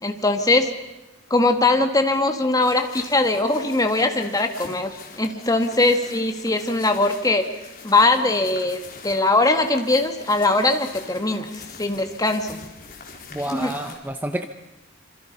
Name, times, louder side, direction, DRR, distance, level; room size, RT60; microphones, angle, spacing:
voice 1, 0.0-0.7 1.3-4.9 5.2-7.5 7.8-11.5 11.8-12.6 13.5-13.7, left 2 dB, 20° left, 5 dB, 2.1 m, -21 dB
sound 1, 2.6-13.9, left 5 dB, 50° left, 4.5 m, -43 dB
voice 2, 13.3-14.5, right 1 dB, 10° right, 7 dB, 0.9 m, -29 dB
27.5 x 26.5 x 5.5 m, 1.0 s
head